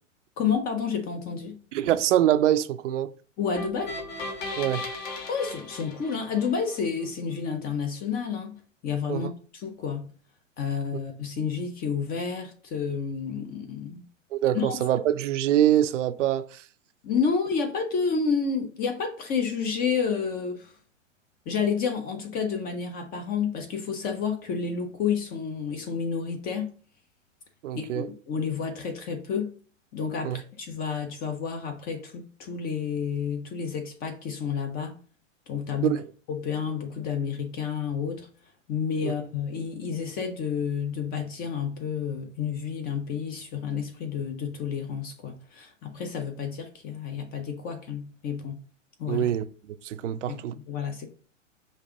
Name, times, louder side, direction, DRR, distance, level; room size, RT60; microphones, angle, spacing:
voice 1, 0.4-1.6 3.4-3.9 5.3-8.6 8.8-10.1 10.6-14.0 14.5-14.8 17.0-20.7 21.5-26.7 27.7-29.5 29.9-35.0 35.5-36.0 36.3-38.3 38.7-48.6 49.0-49.3 50.3-51.1, left 6 dB, 25° left, 0.6 m, -30 dB
voice 2, 1.7-3.1 4.6-4.8 9.1-9.3 14.3-16.5 27.6-28.1 30.2-30.4 35.8-36.0 39.0-39.1 49.1-49.4 49.8-50.6, right 11 dB, 70° right, 0.6 m, -24 dB
sound 1, 3.6-6.8, left 2 dB, 50° left, 1.4 m, -36 dB
5.3 x 2.5 x 3.7 m
hypercardioid pair, 115°, 38 cm